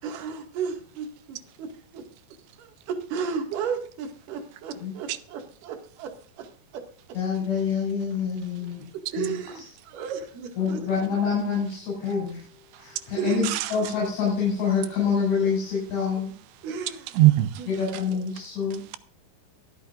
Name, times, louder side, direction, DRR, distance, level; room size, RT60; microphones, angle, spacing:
voice 1, 0.0-2.0 2.6-6.5 6.7-7.2 8.9-10.9 13.2-13.6 16.6-17.1 17.6-17.7, right 6 dB, 55° right, 3.3 m, -34 dB
voice 2, 7.1-8.8 9.2-9.3 10.6-12.4 12.8-16.3 17.8-18.8, left 6 dB, 75° left, 8.1 m, -26 dB
voice 3, 13.4-13.9 17.1-18.0 18.4-18.5 18.7-19.0, right 17 dB, 80° right, 3.1 m, -23 dB
23.0 x 8.6 x 2.5 m
omnidirectional pair, 5.0 m